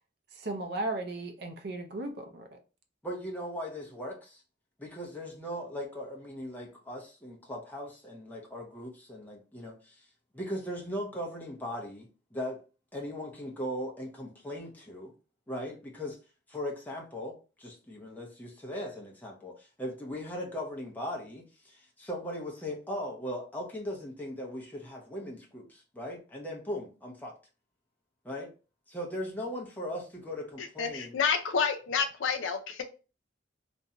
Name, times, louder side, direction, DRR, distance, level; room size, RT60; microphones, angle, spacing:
voice 1, 0.3-2.6, right 2 dB, 60° right, 0.5 m, -36 dB
voice 2, 3.0-4.4 4.8-10.1 10.3-12.6 12.9-15.1 15.5-16.2 16.5-27.3 28.2-28.5 28.9-31.2, equal, 10° left, 0.7 m, -38 dB
voice 3, 30.6-32.8, left 6 dB, 85° left, 0.5 m, -29 dB
2.5 x 2.2 x 2.8 m
head